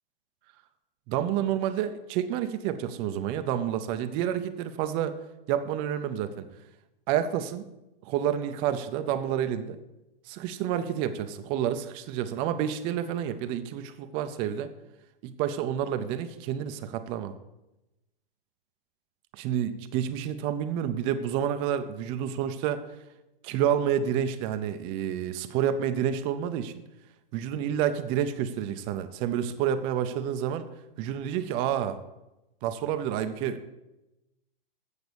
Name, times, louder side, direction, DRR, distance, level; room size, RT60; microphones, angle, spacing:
voice 1, 1.1-5.2 5.5-6.5 7.1-7.6 8.0-9.8 10.3-14.7 15.2-17.3 19.3-22.9 23.4-26.7 27.3-30.7 31.0-32.0 32.6-33.7, right 9 dB, 20° right, 10 dB, 0.4 m, -29 dB
8.0 x 7.0 x 6.7 m, 0.97 s
hypercardioid pair, 140°, 29 cm